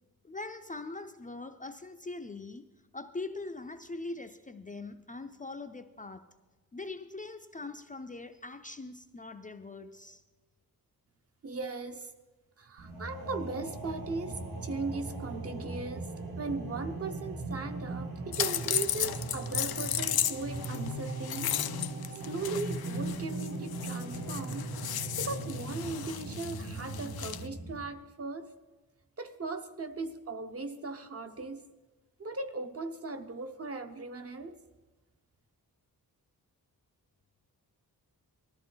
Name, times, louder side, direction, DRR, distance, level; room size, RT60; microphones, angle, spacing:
voice 1, 0.2-6.2 6.7-10.2, left 3 dB, 20° left, 7 dB, 0.5 m, -42 dB
voice 2, 11.4-12.1 12.6-21.5 22.1-24.7 25.2-28.5 29.2-31.6 32.2-34.6, right 3 dB, 40° right, 7 dB, 0.9 m, -38 dB
sound 1, 12.8-27.8, right 2 dB, 70° right, 2.6 m, -39 dB
sound 2, 18.3-27.5, left 10 dB, 90° left, 0.6 m, -35 dB
19.5 x 13.5 x 4.0 m, 1.2 s
wide cardioid pair, 155°, 36 cm